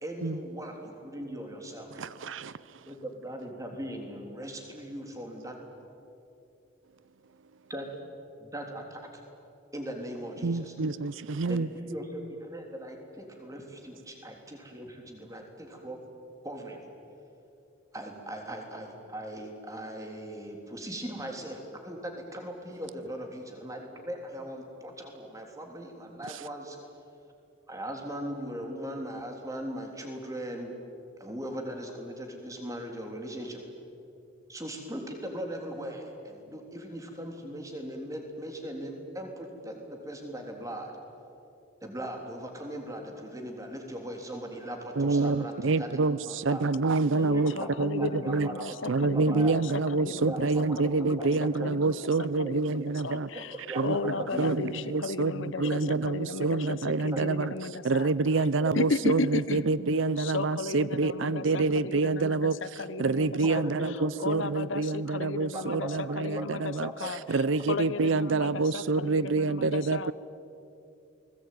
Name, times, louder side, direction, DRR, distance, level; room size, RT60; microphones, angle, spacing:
voice 1, 0.0-2.1 2.8-5.6 7.7-7.9 8.4-9.2 9.7-10.7 11.5-16.0 16.4-16.9 17.9-26.8 27.7-30.7 31.2-33.6 34.5-40.9 41.8-46.0 46.3-46.7 47.2-49.6 50.2-50.4 50.8-50.9 51.2-51.7 52.4-52.6 53.3-53.8 54.2-54.5 55.6-55.7 57.1-57.2 58.6-58.7 63.4-64.2 65.5-65.9 66.4-66.5 66.8-67.1, right 1 dB, 15° right, 2 dB, 3.4 m, -39 dB
voice 2, 1.9-2.8 10.4-11.7 45.0-48.5 48.9-57.5 57.8-62.6 63.0-66.9 67.3-70.1, right 3 dB, 70° right, 18 dB, 0.6 m, -27 dB
voice 3, 47.1-50.5 50.8-51.3 51.6-51.9 52.4-53.6 53.8-58.1 58.7-59.7 60.2-70.1, left 4 dB, 75° left, 15 dB, 0.9 m, -35 dB
29.0 x 20.0 x 9.3 m, 2.8 s
head